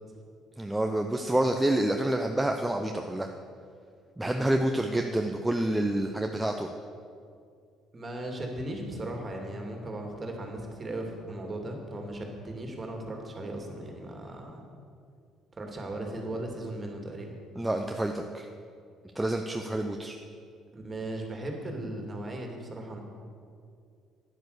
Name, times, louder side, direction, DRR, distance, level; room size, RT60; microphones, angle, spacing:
voice 1, 0.6-3.3 4.2-6.7 17.6-18.5 19.1-20.2, right 1 dB, 10° right, 4 dB, 0.8 m, -28 dB
voice 2, 7.9-14.6 15.6-17.3 20.7-23.0, right 1 dB, 30° right, 2 dB, 2.6 m, -37 dB
10.0 x 9.5 x 6.7 m, 2.3 s
hypercardioid pair, 55°, 0 cm